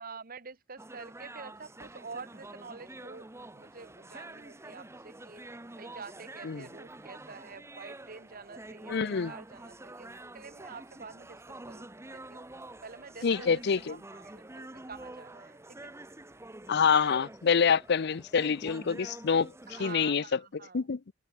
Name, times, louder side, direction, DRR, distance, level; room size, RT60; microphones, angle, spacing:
voice 1, 0.0-5.4 5.8-12.4 12.8-13.6 13.9-15.9 17.1-17.3 19.7-20.8, right 4 dB, 50° right, 1.7 m, -48 dB
sound 1, 0.8-19.9, right 2 dB, 15° right, 1.1 m, -47 dB
voice 2, 8.9-9.3 13.2-14.0 16.7-19.5 19.8-20.2 20.7-21.0, left 6 dB, 60° left, 0.5 m, -26 dB
head